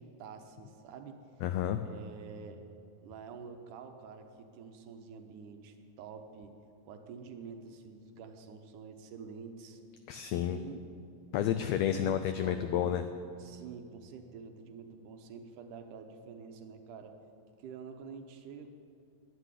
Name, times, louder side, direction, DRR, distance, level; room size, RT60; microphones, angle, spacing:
voice 1, 0.0-1.2 1.8-2.6 3.0-9.8 10.5-10.9 11.9-13.0 13.4-17.2 17.6-18.7, right 6 dB, 85° right, 6 dB, 2.5 m, -47 dB
voice 2, 1.4-1.8 10.1-10.6 11.3-13.0, left 10 dB, 90° left, 9 dB, 1.4 m, -30 dB
11.5 x 8.4 x 9.9 m, 2.5 s
omnidirectional pair, 3.6 m